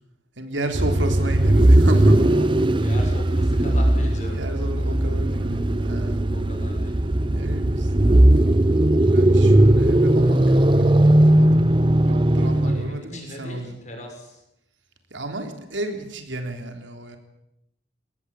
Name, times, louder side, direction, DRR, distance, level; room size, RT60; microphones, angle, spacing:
voice 1, 0.4-3.1 4.2-6.2 7.3-10.9 11.3-11.6 12.1-13.8 15.1-17.2, right 1 dB, 75° right, 5 dB, 3.7 m, -32 dB
sound 1, 0.7-12.9, right 1 dB, 25° right, 0.8 m, -18 dB
voice 2, 2.8-4.4 6.3-7.0 12.5-14.4, left 1 dB, 40° left, 2 dB, 6.4 m, -38 dB
23.0 x 18.5 x 8.6 m, 0.82 s
head